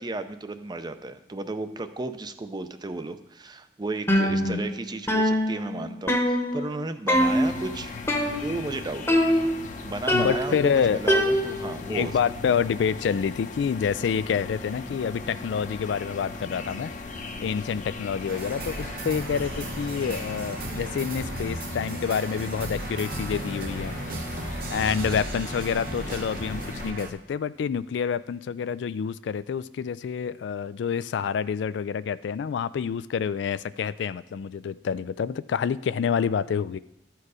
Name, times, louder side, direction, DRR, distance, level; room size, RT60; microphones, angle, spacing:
voice 1, 0.0-7.9 8.4-9.2 9.8-10.6 10.9-12.1, right 2 dB, 25° right, 10 dB, 0.5 m, -34 dB
sound 1, 4.1-4.8 5.1-6.8 7.1-7.6 8.1-8.7 9.1-9.7 10.1-11.8, equal, 15° left, 0.9 m, -24 dB
voice 2, 4.3-4.6 10.1-11.0 11.9-16.9 17.4-24.0 24.7-36.8, left 7 dB, 80° left, 16 dB, 0.3 m, -28 dB
sound 2, 7.1-26.9, left 3 dB, 45° left, 0.8 m, -38 dB
sound 3, 18.3-27.1, right 2 dB, 55° right, 1.0 m, -35 dB
12.5 x 4.7 x 4.9 m, 0.87 s
head